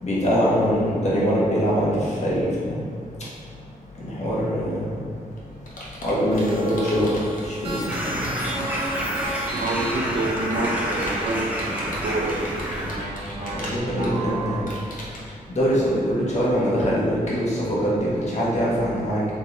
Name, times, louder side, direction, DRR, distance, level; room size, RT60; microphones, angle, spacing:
voice 1, 0.0-2.8 4.0-5.0 6.0-7.2 7.4-8.3 13.5-14.6 15.6-19.2, equal, 50° left, -7 dB, 1.1 m, -23 dB
Computer keyboard, 4.9-9.0 9.6-15.3, left 1 dB, 70° left, 0.8 m, -39 dB
sound 1, 6.3-14.6, right 2 dB, 45° right, 0.8 m, -34 dB
sound 2, 7.9-12.9, equal, 10° right, 0.6 m, -29 dB
voice 2, 9.6-12.5, right 2 dB, 70° right, 0 dB, 0.6 m, -27 dB
3.5 x 3.1 x 4.0 m, 2.2 s
wide cardioid pair, 145°, 15 cm